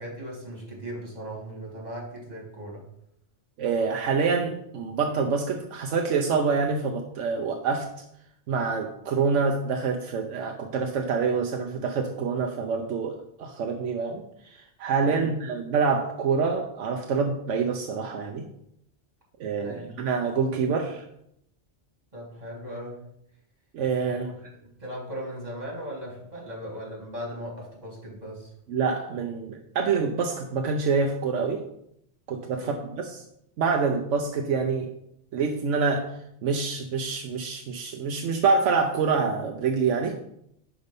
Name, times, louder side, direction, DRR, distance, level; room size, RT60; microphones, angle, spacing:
voice 1, 0.0-2.8 15.0-15.3 19.6-20.0 22.1-23.0 24.0-24.5 24.8-28.5 32.6-32.9, equal, 35° right, -3 dB, 2.3 m, -38 dB
voice 2, 3.6-7.9 8.5-18.4 19.4-21.0 23.7-24.3 28.7-31.6 32.3-33.2 33.6-34.9 35.3-40.2, right 5 dB, 80° right, 3 dB, 1.0 m, -26 dB
5.3 x 4.9 x 5.2 m, 0.75 s
omnidirectional pair, 1.2 m